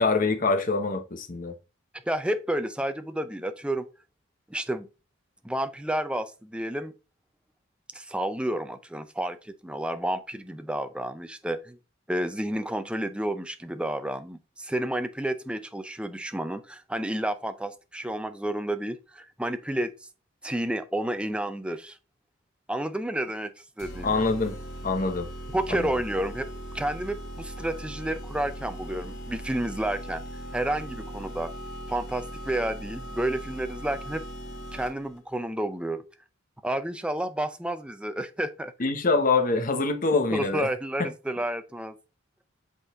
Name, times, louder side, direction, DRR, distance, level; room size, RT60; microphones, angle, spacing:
voice 1, 0.0-1.5 24.0-24.6 24.8-25.3 25.7-25.9 38.8-40.7, left 3 dB, 40° left, 1.0 m, -25 dB
voice 2, 2.0-3.9 4.5-4.9 5.4-6.9 7.9-11.8 12.1-19.9 20.4-22.0 22.7-23.5 23.8-24.2 25.5-26.5 26.7-30.2 30.5-31.5 31.9-34.2 34.7-36.0 36.6-38.7 40.3-42.0, right 1 dB, 5° right, 0.5 m, -30 dB
sound 1, 23.8-35.2, right 1 dB, 55° left, 2.1 m, -39 dB
8.1 x 4.1 x 3.6 m
head